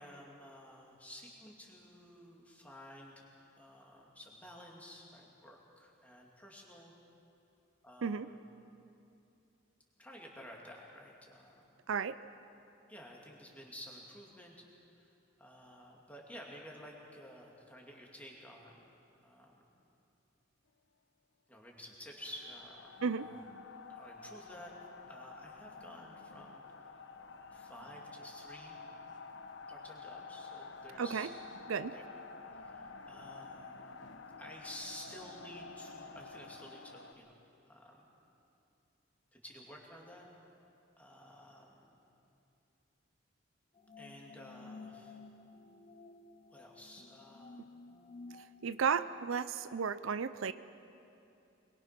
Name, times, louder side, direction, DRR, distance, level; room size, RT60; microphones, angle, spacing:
voice 1, 0.0-3.2 3.6-6.9 7.8-8.4 10.0-11.7 12.9-14.6 15.0-18.9 19.2-19.6 21.5-23.4 23.9-24.7 25.1-27.0 27.5-28.8 29.7-31.3 31.8-32.0 32.5-34.1 34.4-37.3 37.7-38.1 39.3-40.3 41.0-41.9 44.0-45.2 46.5-47.8, equal, 5° left, -2 dB, 2.6 m, -52 dB
voice 2, 11.9-12.2 23.0-23.3 31.0-31.3 31.7-31.9 48.6-50.5, right 6 dB, 80° right, 14 dB, 0.5 m, -33 dB
sound 1, 22.2-37.1, left 4 dB, 60° left, 0.9 m, -50 dB
sound 2, 43.8-49.3, left 3 dB, 30° left, 0.6 m, -53 dB
23.0 x 21.5 x 6.0 m, 2.7 s
head